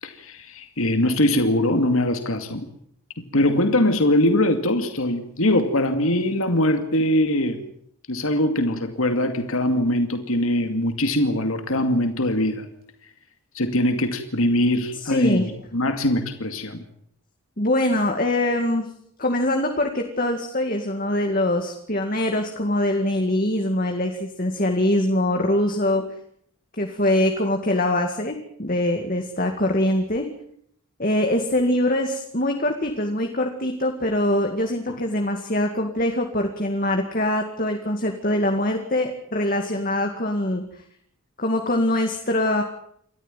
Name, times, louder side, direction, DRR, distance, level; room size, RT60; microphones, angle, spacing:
voice 1, 0.0-2.7 3.2-7.6 8.1-12.7 13.5-16.8, left 1 dB, 70° left, 7 dB, 2.4 m, -22 dB
voice 2, 15.0-15.5 17.6-18.9 19.2-26.0 26.8-30.3 31.0-40.6 41.4-42.6, left 1 dB, 40° left, 3 dB, 2.2 m, -23 dB
28.5 x 14.0 x 9.2 m, 0.68 s
head